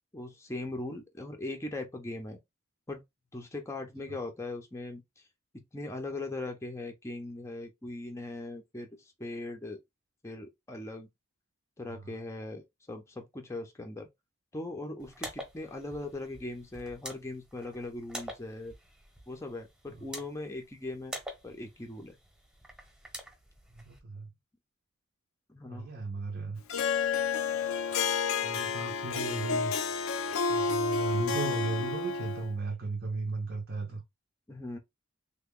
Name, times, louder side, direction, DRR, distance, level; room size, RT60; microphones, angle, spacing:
voice 1, 0.1-2.4 2.9-3.0 3.3-5.2 5.5-9.8 10.2-11.1 11.8-14.1 14.5-18.7 19.3-21.2 21.4-22.1 25.5-25.9 33.9-34.0 34.5-34.8, left 2 dB, 15° left, 0.5 m, -40 dB
sound 1, 15.0-24.0, equal, 5° right, 0.9 m, -46 dB
voice 2, 23.7-24.3 25.7-26.6 28.4-29.7 30.5-34.0, right 3 dB, 50° right, 0.6 m, -35 dB
Harp, 26.7-32.5, left 5 dB, 80° left, 0.5 m, -30 dB
3.3 x 2.2 x 3.6 m
head